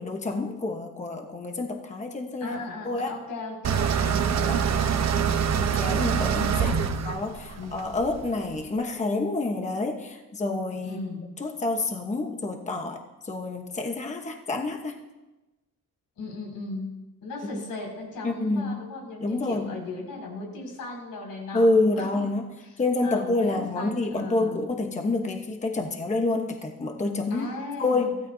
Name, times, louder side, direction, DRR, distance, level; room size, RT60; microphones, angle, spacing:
voice 1, 0.0-2.6 2.8-3.1 4.3-4.6 5.6-6.8 7.0-11.0 11.4-15.0 17.5-17.6 18.2-18.8 19.2-19.7 21.5-27.5 27.8-28.2, left 2 dB, 20° left, 3 dB, 1.1 m, -28 dB
voice 2, 2.4-5.5 6.6-7.0 7.5-7.8 10.8-11.3 16.2-16.9 17.2-22.3 22.6-22.8 23.0-24.6 27.3-28.1, left 3 dB, 85° left, -1 dB, 6.2 m, -37 dB
sound 1, 3.6-8.6, right 7 dB, 55° right, 1.0 m, -25 dB
24.0 x 16.0 x 2.8 m, 1.1 s
cardioid pair, 140°, 33 cm